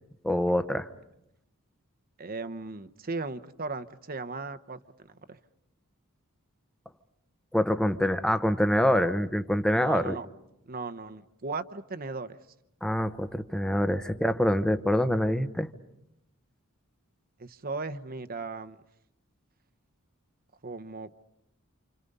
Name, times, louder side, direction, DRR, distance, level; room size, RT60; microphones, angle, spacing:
voice 1, 0.2-0.9 7.5-10.2 12.8-15.7, equal, 5° left, 10 dB, 0.9 m, -25 dB
voice 2, 2.2-5.4 9.8-10.3 10.7-12.4 17.4-18.8 20.6-21.1, right 3 dB, 45° right, 12 dB, 0.9 m, -37 dB
29.0 x 28.0 x 5.5 m, 0.84 s
head